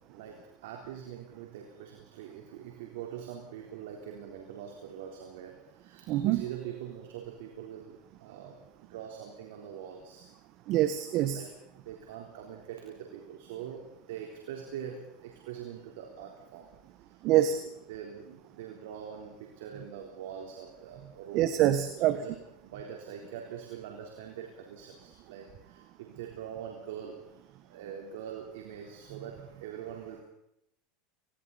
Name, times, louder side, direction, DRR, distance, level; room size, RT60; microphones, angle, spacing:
voice 1, 0.1-8.6 8.9-10.3 11.3-11.5 11.9-16.7 17.1-21.5 22.0-27.2 27.6-30.2, right 9 dB, 75° right, 2 dB, 3.7 m, -43 dB
voice 2, 6.1-6.4 10.7-11.4 17.2-17.6 21.3-22.2, right 12 dB, 55° right, 10 dB, 1.5 m, -25 dB
29.5 x 22.0 x 4.2 m, 0.80 s
hypercardioid pair, 95°, 0 cm